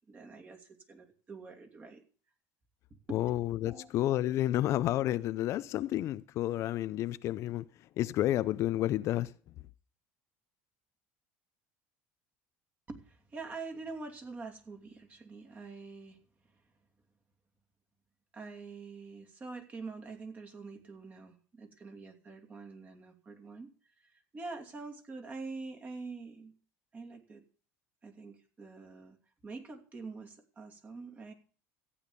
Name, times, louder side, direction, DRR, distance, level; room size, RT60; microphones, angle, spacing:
voice 1, 0.1-2.0 2.9-3.2 3.6-3.9 12.9-16.2 18.3-23.7 24.0-26.5 26.9-27.4 28.0-29.2 29.4-31.3, right 4 dB, 25° right, 2.7 m, -45 dB
voice 2, 3.1-7.6 8.0-9.3, left 14 dB, 55° left, 0.5 m, -30 dB
14.5 x 8.7 x 6.8 m
supercardioid pair, 120°, 6 cm